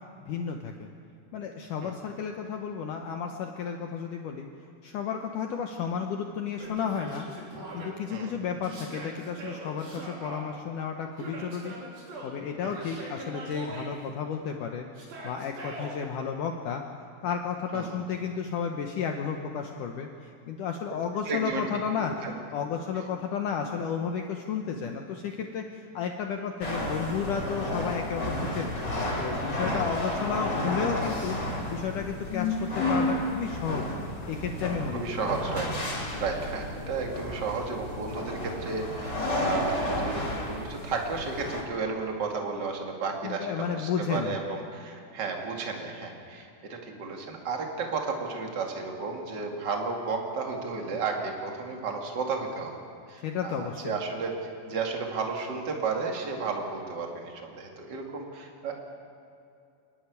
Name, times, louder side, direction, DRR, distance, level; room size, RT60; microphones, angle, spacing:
voice 1, 0.3-0.9 1.3-4.5 4.8-7.3 7.7-11.8 12.2-14.9 15.2-16.8 17.2-28.8 29.2-31.4 31.7-33.9 34.3-35.3 43.2-44.4 53.2-53.9, left 7 dB, 75° left, 3 dB, 1.9 m, -32 dB
Yell, 6.6-7.9 8.6-10.4 11.2-12.3 12.7-13.9 15.0-16.0, right 2 dB, 60° right, 5.1 m, -41 dB
voice 2, 21.3-21.6 22.0-22.3 29.7-30.0 34.9-35.7 36.2-52.8 53.1-58.8, right 4 dB, 35° right, 2 dB, 1.8 m, -33 dB
sound 1, 26.6-41.6, left 1 dB, 25° left, 2.8 m, -32 dB
27.0 x 11.5 x 9.6 m, 2.6 s
omnidirectional pair, 4.9 m